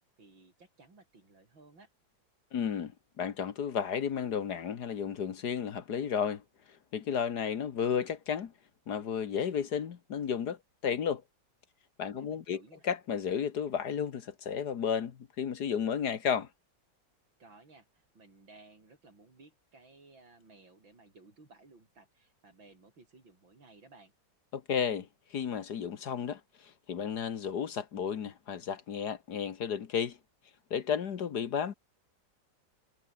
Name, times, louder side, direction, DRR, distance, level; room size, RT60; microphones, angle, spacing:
voice 1, 0.2-1.9 12.1-12.8 17.4-24.1, right 3 dB, 80° right, 6.3 m, -58 dB
voice 2, 2.5-2.9 3.2-6.4 6.9-8.5 8.9-11.2 12.0-16.5 24.5-30.2 30.7-31.7, left 7 dB, 60° left, 1.8 m, -33 dB
omnidirectional pair, 2.1 m